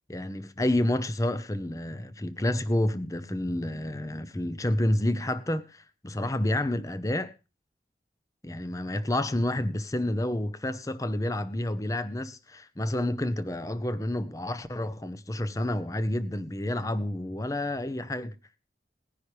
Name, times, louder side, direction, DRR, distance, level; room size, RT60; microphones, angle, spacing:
voice 1, 0.1-7.3 8.4-18.3, left 1 dB, 20° left, 0.8 m, -29 dB
19.5 x 10.5 x 3.3 m
head